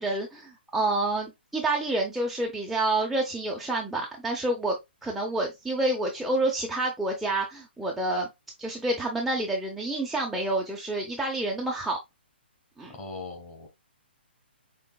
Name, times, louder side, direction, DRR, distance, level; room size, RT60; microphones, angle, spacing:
voice 1, 0.0-4.8 5.0-8.3 8.6-12.0 12.8-12.9, right 2 dB, 5° right, 0.6 m, -28 dB
voice 2, 12.9-13.7, left 3 dB, 20° left, 1.6 m, -40 dB
5.7 x 3.3 x 2.2 m
hypercardioid pair, 150°, 6 cm